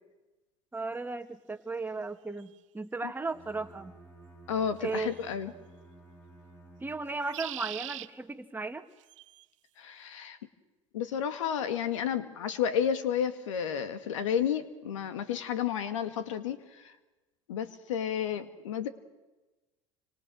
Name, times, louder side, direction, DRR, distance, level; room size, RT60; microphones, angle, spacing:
voice 1, 0.7-3.9 4.8-5.1 6.8-8.8, right 3 dB, 10° right, 8 dB, 1.8 m, -36 dB
sound 1, 2.4-2.5 4.9-5.3 7.1-8.1 9.0-9.4, right 15 dB, 80° right, 0.9 m, -41 dB
Bowed string instrument, 3.3-7.3, right 2 dB, 15° left, 7.3 m, -54 dB
voice 2, 4.5-5.5 9.8-10.4 10.9-16.6 16.8-16.9 17.5-18.9, left 8 dB, 85° left, 10 dB, 2.0 m, -31 dB
29.5 x 26.0 x 6.3 m, 1.1 s
hypercardioid pair, 85°, 16 cm